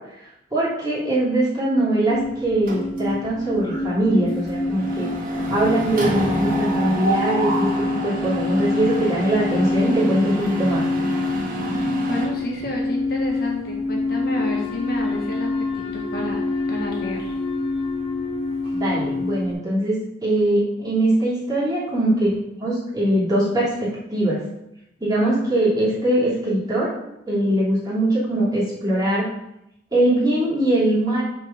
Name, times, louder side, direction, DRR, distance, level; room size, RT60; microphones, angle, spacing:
voice 1, 0.5-7.7 8.0-10.8 18.7-24.4 25.0-26.9 27.2-29.3 29.9-31.2, right 1 dB, 20° right, -9 dB, 3.0 m, -21 dB
sound 1, 2.1-19.5, left 3 dB, 30° left, 2.5 m, -26 dB
Mechanisms, 2.7-3.3 3.6-3.8 4.1-12.2, right 1 dB, 50° right, 1.8 m, -28 dB
voice 2, 12.0-15.5 15.7-16.4 16.7-17.3, equal, 55° left, -1 dB, 1.4 m, -30 dB
6.0 x 4.8 x 6.0 m, 0.85 s
head